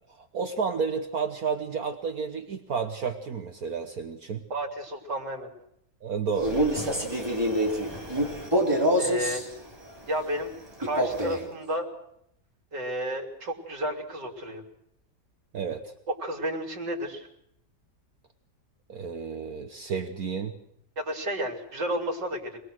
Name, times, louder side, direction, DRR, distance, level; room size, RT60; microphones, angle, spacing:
voice 1, 0.2-4.4 6.0-7.2 15.5-15.9 18.9-20.5, right 5 dB, 60° right, 6 dB, 1.6 m, -31 dB
voice 2, 4.5-5.5 9.0-9.4 10.1-10.5 10.8-11.9 12.7-14.6 16.2-17.3 21.0-22.6, right 1 dB, 80° right, 1 dB, 4.0 m, -32 dB
Male speech man speaking, 6.3-9.5 10.8-11.5, equal, 15° right, 3.5 m, -26 dB
26.0 x 20.0 x 6.4 m, 0.75 s
omnidirectional pair, 1.9 m